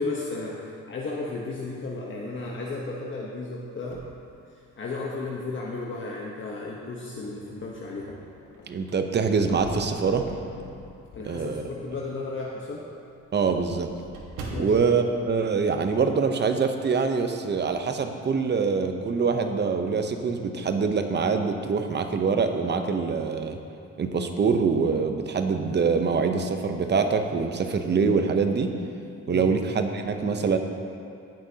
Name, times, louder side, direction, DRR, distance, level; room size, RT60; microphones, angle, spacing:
voice 1, 0.0-4.0 4.8-8.1 11.2-12.9 14.5-14.8 29.3-29.5, left 3 dB, 40° left, -3 dB, 1.0 m, -34 dB
sound 1, 3.8-5.1 5.7-5.8 7.2-7.8 8.2-10.9 11.3-11.5 11.8-11.9 12.2-12.3 12.5-16.3 16.6-16.8 17.1-17.7, right 3 dB, 90° right, 1.3 m, -44 dB
sound 2, 7.2-8.6 8.9-9.0 9.4-12.0 12.7-12.8, left 3 dB, 80° left, 1.5 m, -42 dB
voice 2, 8.7-10.3 11.2-11.6 13.3-13.9 14.6-23.6 24.0-28.7 29.3-30.6, right 5 dB, 35° right, 6 dB, 0.8 m, -24 dB
17.5 x 6.0 x 2.8 m, 2.5 s
cardioid pair, 90°, 30 cm